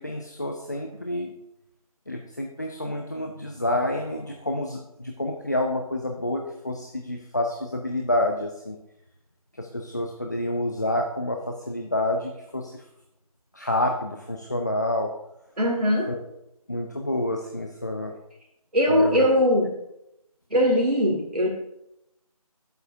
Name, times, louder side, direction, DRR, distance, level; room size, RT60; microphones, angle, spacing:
voice 1, 0.0-1.3 2.1-8.8 9.6-12.8 13.5-15.1 16.1-16.2 16.7-18.1 18.9-19.3, left 1 dB, 30° left, 2 dB, 0.5 m, -28 dB
voice 2, 15.6-16.1 18.7-19.7 20.5-21.5, equal, 90° right, -1 dB, 2.1 m, -21 dB
10.5 x 8.0 x 2.6 m, 0.84 s
figure-of-eight pair, 165°, 19 cm